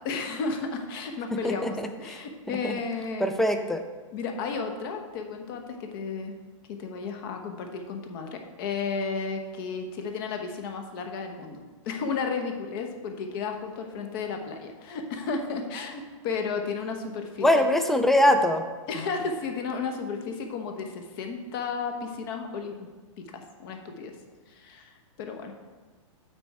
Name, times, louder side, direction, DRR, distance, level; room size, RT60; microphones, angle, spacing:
voice 1, 0.0-3.3 4.1-6.3 6.7-17.6 18.9-22.9 23.2-24.1 24.5-25.5, left 4 dB, 45° left, 4 dB, 1.0 m, -33 dB
voice 2, 1.4-2.2 2.5-2.8 3.2-3.8 17.4-18.6, left 1 dB, ahead, 7 dB, 0.3 m, -23 dB
8.7 x 4.2 x 4.7 m, 1.4 s
hypercardioid pair, 140°, 17 cm